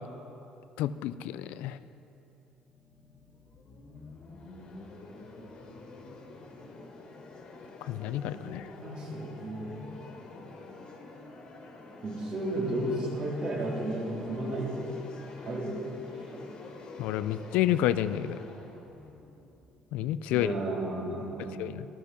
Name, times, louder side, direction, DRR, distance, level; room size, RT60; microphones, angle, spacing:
voice 1, 0.8-1.8 7.8-8.7 17.0-18.4 19.9-20.5 21.4-21.9, left 12 dB, 80° left, 14 dB, 0.4 m, -30 dB
sound 1, 2.5-20.3, left 2 dB, 45° left, 2.1 m, -47 dB
voice 2, 8.8-9.8 12.0-15.0 15.4-15.8 16.1-16.5 20.3-21.6, right 1 dB, 45° right, -2 dB, 3.3 m, -33 dB
13.5 x 12.5 x 6.1 m, 2.9 s
cardioid pair, 125°, 2 cm